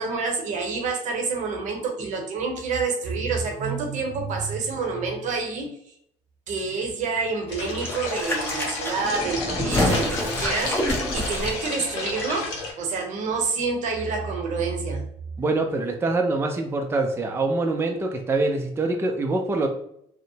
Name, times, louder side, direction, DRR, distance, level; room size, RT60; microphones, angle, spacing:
voice 1, 0.0-5.7 6.5-10.9 11.1-15.0, right 4 dB, 60° right, 2 dB, 0.8 m, -28 dB
sound 1, 7.5-12.7, left 3 dB, 85° left, 0.6 m, -32 dB
sound 2, 7.5-12.4 12.6-12.7, left 1 dB, 15° left, 0.8 m, -28 dB
voice 2, 15.4-19.7, right 2 dB, 15° right, 3 dB, 0.4 m, -24 dB
2.6 x 2.1 x 2.7 m, 0.70 s
supercardioid pair, 75°, 14 cm